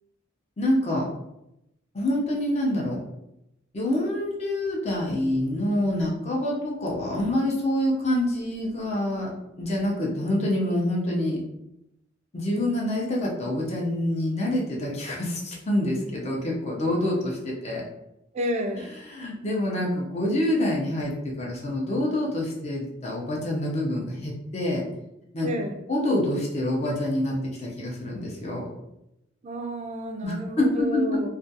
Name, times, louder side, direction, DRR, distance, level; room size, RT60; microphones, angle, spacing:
voice 1, 0.6-1.0 1.9-3.0 3.7-9.3 9.6-11.4 12.3-17.8 19.1-24.8 25.3-25.5 25.9-28.7 30.2-31.2, left 1 dB, 35° left, -2 dB, 0.6 m, -26 dB
voice 2, 18.3-19.0 25.4-25.8 29.4-31.3, equal, 35° right, 5 dB, 0.3 m, -31 dB
2.4 x 2.2 x 2.7 m, 0.86 s
head